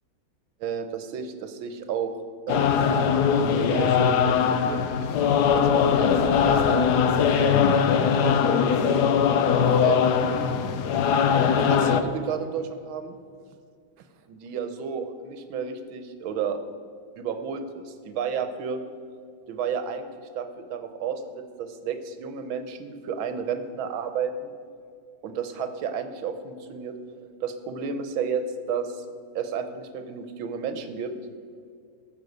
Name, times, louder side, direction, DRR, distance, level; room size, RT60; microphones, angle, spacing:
voice 1, 0.6-2.1 2.5-3.0 3.6-4.8 5.5-8.7 9.7-10.6 11.6-13.2 14.3-16.6 17.2-18.8 19.5-20.1 20.3-24.5 25.2-29.0 29.3-31.1, right 6 dB, 80° right, 9 dB, 1.7 m, -32 dB
sound 1, 2.5-12.0, left 7 dB, 65° left, 1.1 m, -21 dB
13.5 x 6.8 x 7.9 m, 2.2 s
omnidirectional pair, 2.2 m